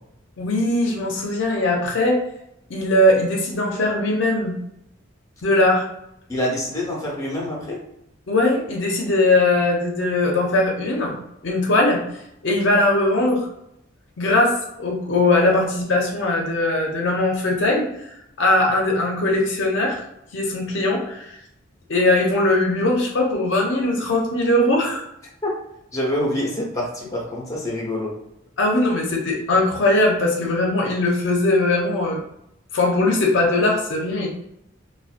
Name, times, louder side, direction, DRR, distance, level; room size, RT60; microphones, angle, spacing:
voice 1, 0.4-2.2 2.7-4.6 5.4-5.9 8.3-12.0 12.4-13.5 14.2-20.0 20.3-21.4 21.9-25.0 28.6-32.2 32.7-34.3, left 2 dB, 65° left, 0 dB, 0.5 m, -20 dB
voice 2, 6.3-7.8 25.4-25.5 25.9-28.1, left 1 dB, 15° left, -4 dB, 0.7 m, -26 dB
2.5 x 2.1 x 2.4 m, 0.81 s
head